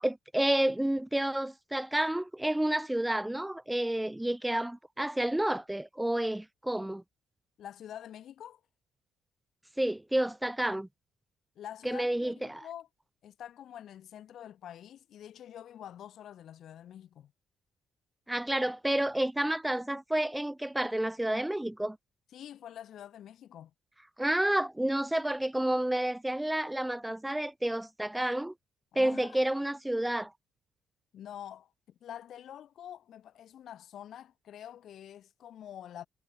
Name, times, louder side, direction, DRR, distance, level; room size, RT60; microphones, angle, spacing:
voice 1, 0.0-7.0 9.8-10.9 11.8-12.6 18.3-22.0 24.2-28.5 28.9-30.3, right 1 dB, 5° right, 0.7 m, -30 dB
voice 2, 7.6-8.6 11.6-12.9 13.2-17.3 22.3-23.7 28.9-29.4 31.1-36.1, left 10 dB, 60° left, 5.6 m, -46 dB
cardioid pair, 135°, 0 cm